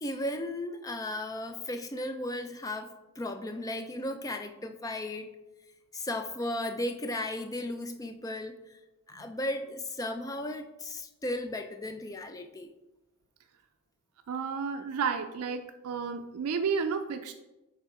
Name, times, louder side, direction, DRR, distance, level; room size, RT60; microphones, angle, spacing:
voice 1, 0.0-5.3 5.9-8.8 9.1-12.7, left 1 dB, 15° left, 7 dB, 0.4 m, -35 dB
voice 2, 14.3-17.3, right 5 dB, 85° right, 7 dB, 0.4 m, -32 dB
7.3 x 3.4 x 4.8 m, 1.0 s
head